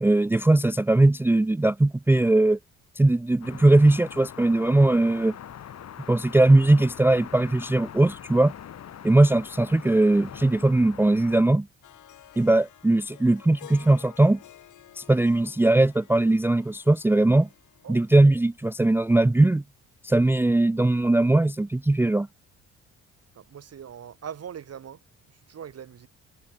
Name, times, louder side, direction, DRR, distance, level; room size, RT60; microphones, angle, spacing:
voice 1, 0.0-2.6 3.0-5.4 6.1-8.5 9.0-11.7 12.4-14.4 15.0-17.5 17.9-19.6 20.0-22.3, right 2 dB, 5° right, 0.5 m, -20 dB
sound 1, 3.4-11.4, left 9 dB, 60° left, 2.9 m, -43 dB
Harp, 11.8-19.0, left 12 dB, 75° left, 6.0 m, -52 dB
voice 2, 23.4-25.0 25.5-26.1, right 8 dB, 55° right, 3.4 m, -41 dB
cardioid pair, 90°, 30 cm